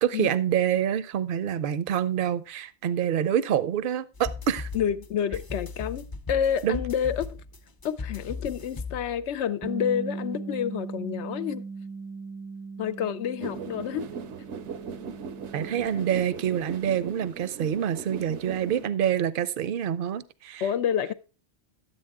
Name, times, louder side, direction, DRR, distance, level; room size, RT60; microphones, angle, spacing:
voice 1, 0.0-4.7 6.6-6.8 15.5-20.7, right 9 dB, 55° right, 0.7 m, -26 dB
sound 1, 4.1-9.4, left 4 dB, 30° left, 0.4 m, -37 dB
voice 2, 4.7-7.4 7.8-11.6 12.8-14.1 20.6-21.1, left 8 dB, 75° left, 0.9 m, -29 dB
Bass guitar, 9.6-15.9, right 4 dB, 25° right, 0.5 m, -38 dB
sound 2, 13.4-18.9, right 6 dB, 80° right, 1.0 m, -39 dB
11.5 x 8.2 x 3.5 m
omnidirectional pair, 1.2 m